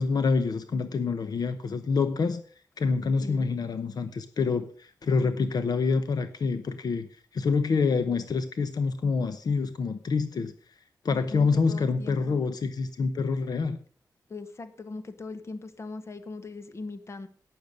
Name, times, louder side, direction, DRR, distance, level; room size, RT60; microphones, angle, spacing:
voice 1, 0.0-2.4 2.8-10.5 11.0-13.8, left 4 dB, 65° left, 10 dB, 0.9 m, -27 dB
voice 2, 11.1-12.4 14.3-17.3, left 3 dB, 40° left, 11 dB, 1.2 m, -40 dB
12.0 x 9.0 x 5.1 m, 0.43 s
wide cardioid pair, 180°, 7 cm